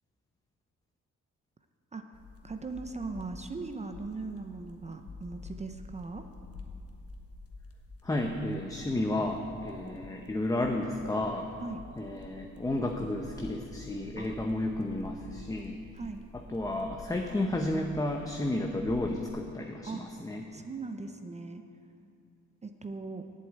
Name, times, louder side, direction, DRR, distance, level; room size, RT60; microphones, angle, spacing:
sound 1, 2.1-19.3, left 3 dB, 50° left, 1.3 m, -49 dB
voice 1, 2.4-6.3 11.6-11.8 14.2-14.4 15.9-16.2 19.8-20.0 20.5-21.6 22.6-23.3, right 3 dB, 20° right, 7 dB, 0.6 m, -39 dB
voice 2, 8.0-11.5 12.0-15.8 16.5-20.4, left 1 dB, 10° left, 2 dB, 0.7 m, -32 dB
8.1 x 7.8 x 8.4 m, 2.5 s
cardioid pair, 90°, 30 cm